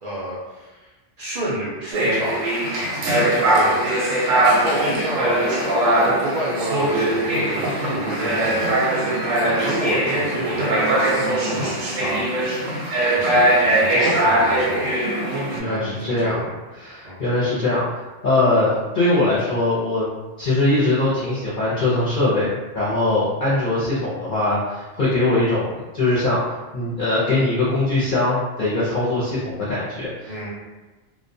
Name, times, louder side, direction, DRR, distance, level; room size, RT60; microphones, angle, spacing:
voice 1, 0.0-0.9 1.2-2.4 2.8-3.9 4.5-5.4 6.0-12.6 13.1-14.9 15.6-16.5 17.0-17.2 30.3-30.5, right 1 dB, 65° right, -6 dB, 0.4 m, -30 dB
sound 1, 1.9-15.6, right 1 dB, 85° right, 1.0 m, -21 dB
voice 2, 15.5-16.4 16.8-20.1 20.4-22.5 22.7-30.5, left 2 dB, 50° left, -9 dB, 0.6 m, -21 dB
2.2 x 2.2 x 2.6 m, 1.2 s
omnidirectional pair, 1.3 m